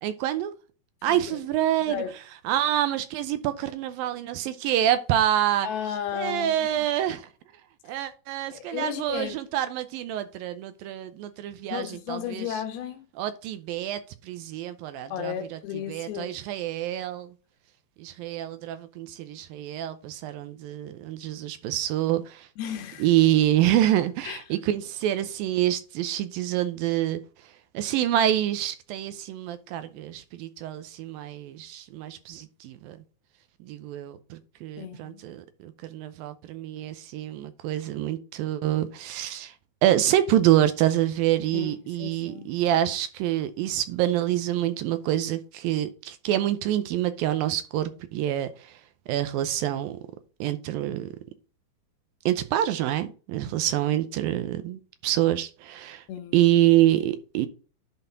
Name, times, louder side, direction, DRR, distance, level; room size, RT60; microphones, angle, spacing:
voice 1, 0.0-0.5 1.0-2.0 2.5-5.7 6.1-7.3 7.8-12.6 13.2-15.6 15.9-17.3 18.0-22.5 23.0-27.2 27.7-33.0 33.6-39.5 39.8-48.8 49.1-50.0 50.4-51.1 52.3-56.0 56.3-57.5, right 12 dB, 80° right, 2.3 m, -26 dB
voice 2, 1.1-1.4 1.9-2.1 5.6-6.7 7.9-8.1 8.5-9.4 11.7-13.1 15.1-16.4 22.6-23.1 24.2-24.4 34.8-35.2 41.5-42.5 53.6-53.7 56.1-56.4, left 9 dB, 80° left, 3.0 m, -34 dB
11.0 x 4.2 x 3.8 m
omnidirectional pair, 4.4 m